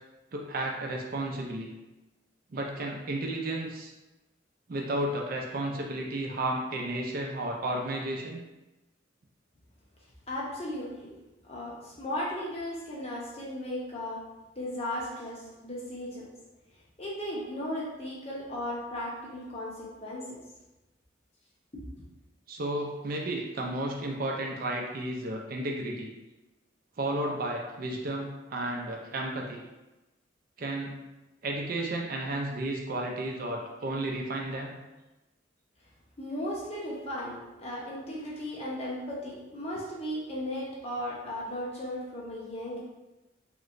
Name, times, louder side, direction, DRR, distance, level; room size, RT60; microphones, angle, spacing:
voice 1, 0.3-1.7 2.5-3.9 4.7-8.4 22.5-26.1 27.0-29.6 30.6-31.0 31.4-34.8, right 1 dB, 50° right, 0 dB, 0.4 m, -33 dB
voice 2, 10.3-11.1 11.4-14.2 14.6-16.3 17.0-20.4 21.7-21.8 36.2-42.8, left 1 dB, 30° left, -5 dB, 0.7 m, -36 dB
3.1 x 2.9 x 2.5 m, 1.0 s
head